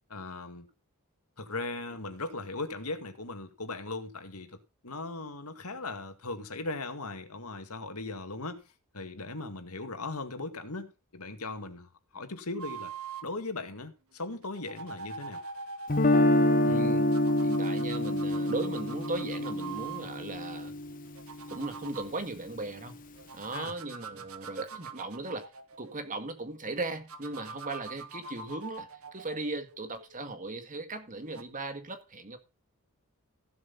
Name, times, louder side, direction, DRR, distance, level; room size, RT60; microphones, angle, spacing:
voice 1, 0.1-0.7 1.4-8.6 8.9-12.9 13.2-15.4 23.5-23.8, left 3 dB, 85° left, 2.2 m, -38 dB
sound 1, 12.6-13.3 14.3-16.3 17.1-20.0 21.0-22.1 23.2-26.3 27.1-30.4 31.2-31.4, right 5 dB, 70° right, 1.7 m, -44 dB
Guitar, 15.9-21.9, left 1 dB, 40° left, 1.2 m, -27 dB
voice 2, 16.6-17.2 17.4-20.7 21.5-23.0 23.3-25.4 25.8-32.4, right 2 dB, 35° right, 2.0 m, -37 dB
15.5 x 7.8 x 4.1 m
head